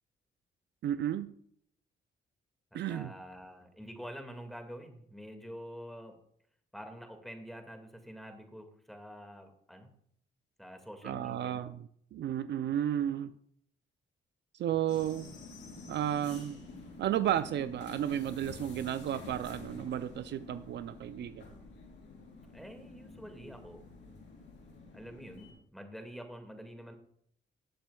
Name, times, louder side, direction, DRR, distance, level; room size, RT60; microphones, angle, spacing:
voice 1, 0.8-1.3 2.7-3.1 11.0-13.3 14.6-15.3 15.9-16.6 17.0-21.4, right 11 dB, 65° right, 12 dB, 0.5 m, -33 dB
voice 2, 2.9-6.2 6.7-9.9 10.6-11.7 22.5-23.8 24.9-26.9, equal, ahead, 5 dB, 1.9 m, -47 dB
sound 1, 14.9-25.5, left 3 dB, 65° left, 4.0 m, -49 dB
19.0 x 7.4 x 2.3 m, 0.67 s
cardioid pair, 90°, 20 cm